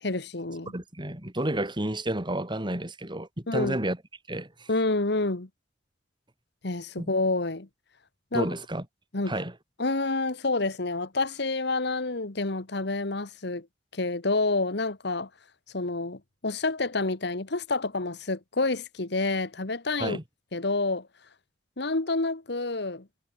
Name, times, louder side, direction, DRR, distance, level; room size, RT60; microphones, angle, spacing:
voice 1, 0.0-0.7 3.5-3.8 4.7-5.5 6.6-7.7 8.3-8.5 9.1-9.3 9.8-13.7 13.9-15.3 15.7-20.2 20.5-21.1 21.8-23.1, left 3 dB, 65° left, 1.7 m, -28 dB
voice 2, 0.7-4.0 4.3-4.7 7.0-7.1 8.3-8.8 9.3-9.5 20.0-20.2, right 1 dB, 25° right, 3.4 m, -31 dB
head